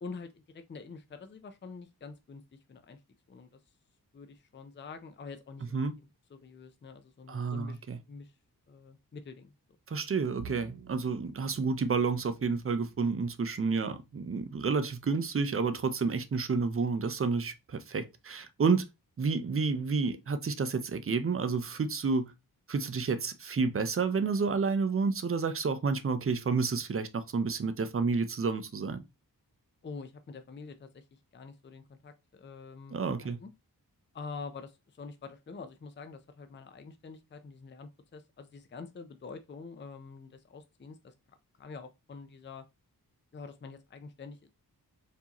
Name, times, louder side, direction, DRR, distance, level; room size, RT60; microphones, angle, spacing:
voice 1, 0.0-3.0 3.3-3.5 4.1-5.7 6.3-8.3 8.7-9.5 29.8-33.5 34.1-41.1 41.6-42.6 43.3-44.5, left 4 dB, 30° left, 0.5 m, -46 dB
voice 2, 7.3-8.0 9.9-18.8 19.2-22.3 22.7-29.0 32.9-33.4, right 4 dB, 35° right, 0.5 m, -30 dB
Bowed string instrument, 10.4-16.8, right 5 dB, 85° right, 0.7 m, -54 dB
4.6 x 2.7 x 2.9 m
wide cardioid pair, 80°, 38 cm